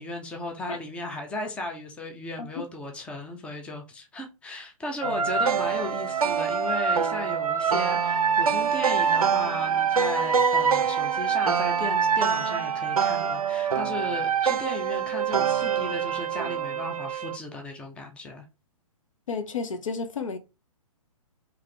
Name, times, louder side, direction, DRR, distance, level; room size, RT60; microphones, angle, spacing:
voice 1, 0.0-18.5, left 2 dB, 5° left, 0.5 m, -36 dB
sound 1, 5.0-17.4, right 7 dB, 80° right, 0.5 m, -25 dB
voice 2, 19.3-20.4, left 5 dB, 65° left, 0.8 m, -32 dB
3.6 x 2.9 x 3.3 m
figure-of-eight pair, 125°, 18 cm